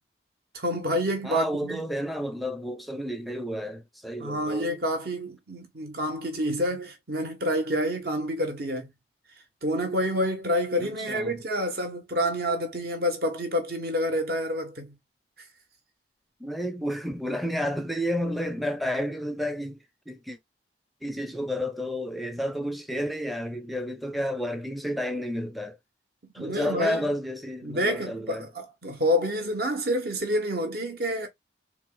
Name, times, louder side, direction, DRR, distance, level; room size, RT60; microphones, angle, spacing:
voice 1, 0.5-1.8 4.2-8.9 9.6-14.9 26.2-27.1 27.6-31.3, equal, 60° right, 1.2 m, -28 dB
voice 2, 1.2-4.7 10.8-11.4 16.4-20.4 21.0-25.8 26.3-28.5, equal, ahead, 0.5 m, -31 dB
4.1 x 2.4 x 3.8 m
head